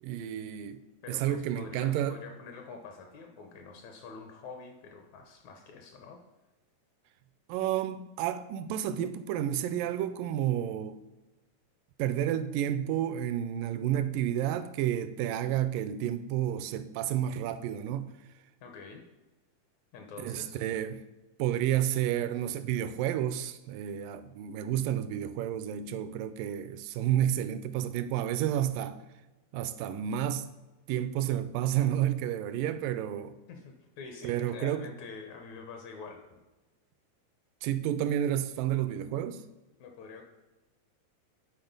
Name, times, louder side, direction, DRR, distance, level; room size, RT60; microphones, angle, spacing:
voice 1, 0.0-2.2 7.5-11.0 12.0-18.1 20.2-21.0 21.4-29.0 29.5-30.5 30.9-33.4 34.2-34.9 37.6-39.4, right 11 dB, 85° right, 2.2 m, -30 dB
voice 2, 1.0-6.2 18.6-19.0 19.9-20.6 33.5-36.4 39.8-40.2, left 4 dB, 70° left, 2.0 m, -46 dB
10.0 x 4.3 x 5.3 m
omnidirectional pair, 3.9 m